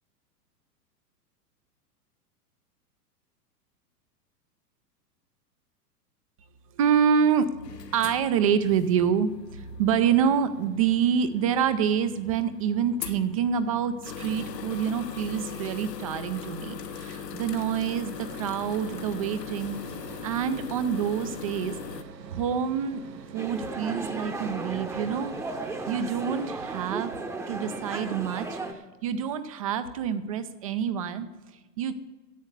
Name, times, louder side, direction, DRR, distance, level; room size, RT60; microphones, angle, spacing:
voice 1, 6.7-7.5 7.9-19.8 20.2-21.7 22.3-23.0 23.3-25.3 25.9-27.2 27.5-31.3 31.8-31.9, right 7 dB, 25° right, 12 dB, 0.3 m, -27 dB
sound 1, 7.6-22.0, left 6 dB, 80° left, 1.1 m, -40 dB
sound 2, 18.1-26.9, right 5 dB, 85° right, 1.1 m, -45 dB
sound 3, 23.4-28.7, right 2 dB, 5° right, 0.7 m, -35 dB
10.5 x 7.9 x 8.1 m, 1.2 s
hypercardioid pair, 110°, 48 cm